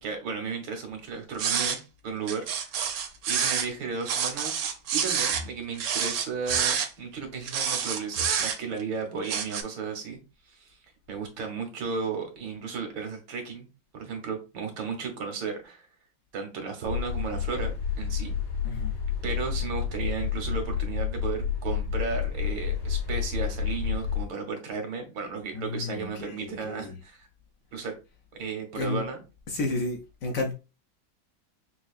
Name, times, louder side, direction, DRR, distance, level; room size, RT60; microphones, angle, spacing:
voice 1, 0.0-1.8 2.0-4.7 4.9-10.2 10.5-10.8 11.1-13.7 13.9-15.9 16.3-18.4 19.2-27.3 27.7-27.9 28.3-29.2, right 5 dB, 90° right, 1.8 m, -34 dB
sound 1, 1.4-1.8 2.3-3.7 4.1-5.5 5.8-6.9 7.5-8.8 9.2-9.6, right 7 dB, 70° right, 0.9 m, -27 dB
sound 2, 16.8-24.3, left 7 dB, 90° left, 2.8 m, -30 dB
voice 2, 18.6-19.0 25.5-27.0 28.7-29.0 29.5-30.5, left 2 dB, 70° left, 0.8 m, -32 dB
5.5 x 2.5 x 2.4 m
omnidirectional pair, 2.0 m